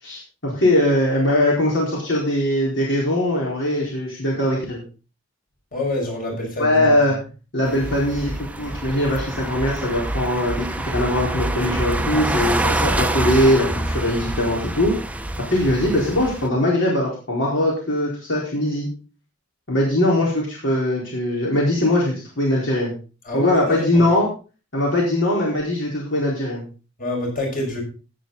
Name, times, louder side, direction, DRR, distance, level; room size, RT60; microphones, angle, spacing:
voice 1, 0.0-4.8 6.6-7.2 7.5-14.9 15.5-18.9 19.7-22.9 23.3-24.3 24.7-26.6, left 1 dB, 65° left, -4 dB, 4.4 m, -21 dB
voice 2, 5.7-7.2 23.2-24.1 27.0-27.8, left 1 dB, 45° left, 0 dB, 6.0 m, -27 dB
sound 1, 7.6-16.5, right 1 dB, 5° right, 0.8 m, -26 dB
16.5 x 8.4 x 4.0 m, 0.35 s
head